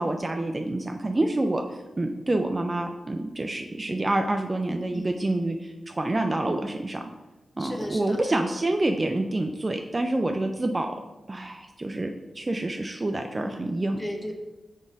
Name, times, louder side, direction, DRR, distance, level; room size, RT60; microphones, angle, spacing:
voice 1, 0.0-7.0 7.6-10.9 11.3-14.0, right 2 dB, 25° right, 4 dB, 0.3 m, -27 dB
voice 2, 4.9-5.4 7.6-8.2 13.3-13.7 14.0-14.3, equal, 15° left, 2 dB, 0.8 m, -36 dB
6.1 x 3.9 x 3.9 m, 1.1 s
wide cardioid pair, 135°, 0 cm